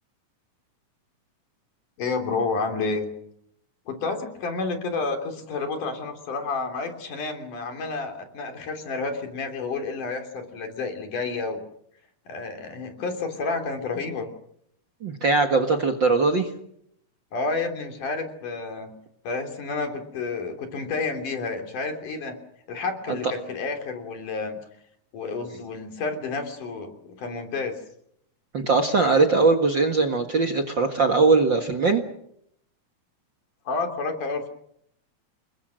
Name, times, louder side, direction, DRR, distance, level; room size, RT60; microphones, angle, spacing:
voice 1, 2.0-3.1 3.9-11.6 12.3-14.3 17.3-18.9 19.2-22.3 22.7-24.6 25.1-27.8 33.7-34.5, left 4 dB, 65° left, 6 dB, 4.7 m, -30 dB
voice 2, 15.0-16.5 23.1-23.3 28.5-32.0, right 3 dB, 45° right, 5 dB, 1.8 m, -21 dB
29.0 x 21.5 x 6.4 m, 0.72 s
omnidirectional pair, 4.0 m